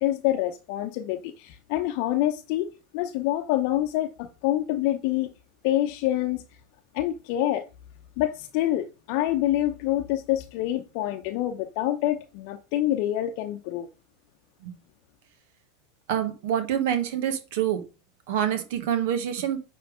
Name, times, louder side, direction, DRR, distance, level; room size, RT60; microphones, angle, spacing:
voice 1, 0.0-5.3 5.6-6.4 6.9-7.7 8.2-13.9, left 14 dB, 55° left, 0.8 m, -26 dB
voice 2, 16.1-17.8 18.3-19.6, right 10 dB, 60° right, 1.2 m, -26 dB
9.4 x 3.5 x 5.0 m
figure-of-eight pair, 85°, 0 cm